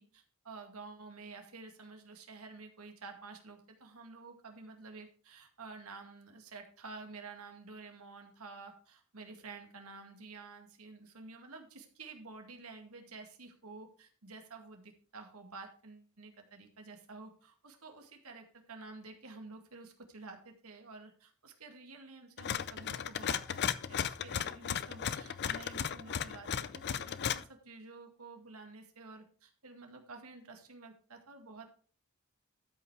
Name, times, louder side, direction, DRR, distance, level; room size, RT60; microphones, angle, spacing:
voice 1, 0.0-31.7, right 3 dB, 85° right, 4 dB, 2.1 m, -50 dB
sound 1, 22.4-27.4, left 8 dB, 50° left, 0.5 m, -35 dB
13.0 x 5.5 x 4.7 m, 0.42 s
head